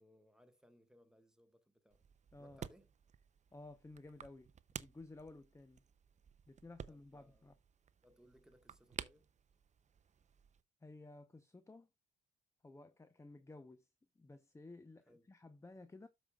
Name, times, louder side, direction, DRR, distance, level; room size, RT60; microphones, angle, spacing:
voice 1, 0.0-2.0 2.4-2.9 6.9-7.5 8.0-9.4 15.1-15.3, equal, 5° right, 1.4 m, -67 dB
sound 1, 1.9-10.6, right 7 dB, 35° right, 0.6 m, -53 dB
voice 2, 3.5-4.5 4.8-5.8 6.5-7.5 10.8-11.9 12.6-13.9 14.2-16.1, left 2 dB, 15° left, 0.7 m, -55 dB
13.0 x 5.1 x 2.3 m
cardioid pair, 90°, 20 cm